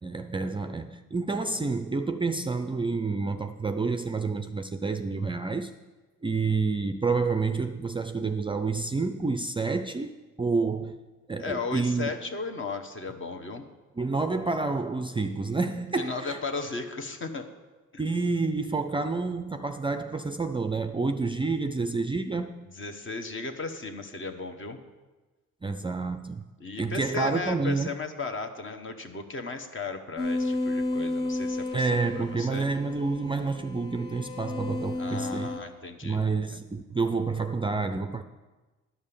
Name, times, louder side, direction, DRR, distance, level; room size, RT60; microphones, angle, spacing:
voice 1, 0.0-5.7 6.2-11.0 11.3-12.1 14.0-16.4 18.0-22.7 25.6-26.4 26.8-27.9 31.7-35.5 36.0-38.2, right 4 dB, 15° right, 8 dB, 0.4 m, -29 dB
voice 2, 11.4-13.6 15.9-17.5 17.9-18.0 22.8-24.8 26.6-32.7 35.0-36.2, left 3 dB, 40° left, 6 dB, 1.1 m, -35 dB
sound 1, 30.2-35.6, left 2 dB, 90° left, 2.4 m, -32 dB
11.0 x 5.4 x 6.8 m, 1.2 s
cardioid pair, 90°, 30 cm